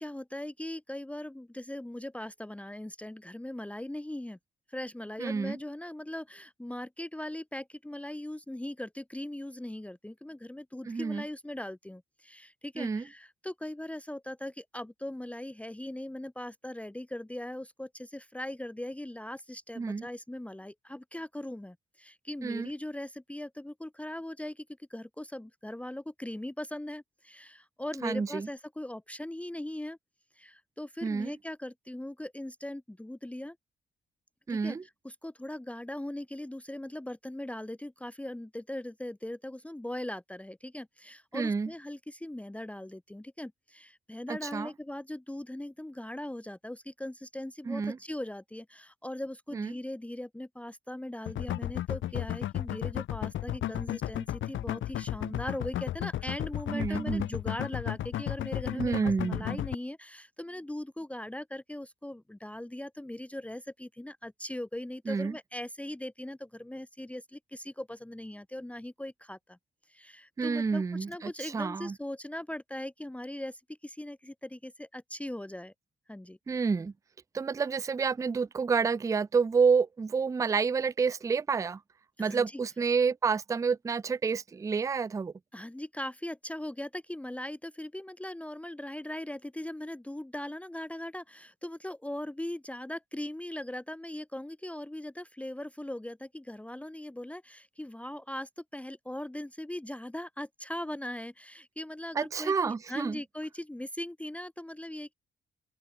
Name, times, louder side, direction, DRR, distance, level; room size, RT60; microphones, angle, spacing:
voice 1, 0.0-4.4 4.7-30.0 30.3-33.6 34.5-34.8 35.0-69.6 69.9-75.7 76.1-76.4 82.2-82.6 85.5-105.1, left 1 dB, 5° left, 1.2 m, -40 dB
voice 2, 5.2-5.6 10.9-11.2 12.8-13.0 19.8-20.1 22.4-22.7 28.0-28.5 31.0-31.3 34.5-34.8 41.3-41.7 44.3-44.7 47.7-48.0 49.5-49.7 56.7-57.2 58.8-59.6 65.1-65.4 70.4-72.0 76.5-76.9 77.3-81.8 82.2-85.3 102.2-103.2, right 5 dB, 15° right, 0.4 m, -29 dB
sound 1, 51.3-59.7, left 13 dB, 75° left, 1.9 m, -33 dB
open air
cardioid pair, 90°, 20 cm